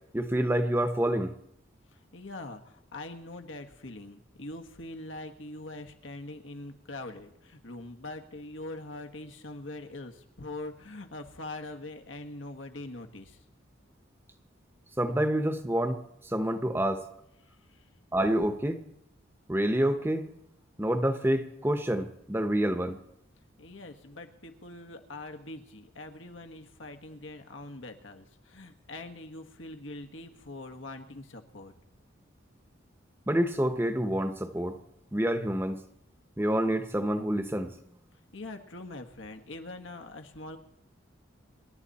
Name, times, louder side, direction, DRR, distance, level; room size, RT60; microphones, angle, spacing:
voice 1, 0.1-1.3 15.0-17.1 18.1-18.8 19.5-20.3 20.8-23.0 33.3-34.8 35.1-35.8 36.4-37.7, right 1 dB, 10° right, 8 dB, 1.0 m, -27 dB
voice 2, 1.9-13.4 17.4-17.9 23.6-31.7 38.3-40.6, left 2 dB, 80° left, 5 dB, 1.6 m, -43 dB
27.0 x 11.5 x 4.2 m, 0.78 s
head